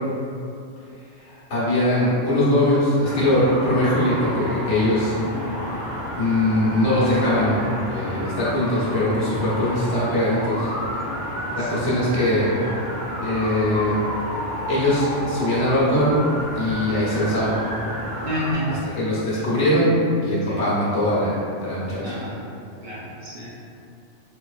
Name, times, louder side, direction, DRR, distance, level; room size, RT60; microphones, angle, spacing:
voice 1, 1.2-5.1 6.2-7.6 7.9-10.7 11.5-12.5 13.2-13.9 14.7-16.2 16.5-17.6 18.9-19.9 20.2-21.4 21.6-22.2, left 1 dB, 75° left, -8 dB, 1.2 m, -21 dB
sound 1, 3.0-18.5, equal, 35° right, 0.6 m, -30 dB
voice 2, 18.2-19.0 19.3-19.4 20.5-20.6 22.0-22.4 22.8-23.5, equal, 55° right, -8 dB, 0.9 m, -30 dB
3.8 x 2.9 x 2.4 m, 2.6 s
omnidirectional pair, 1.2 m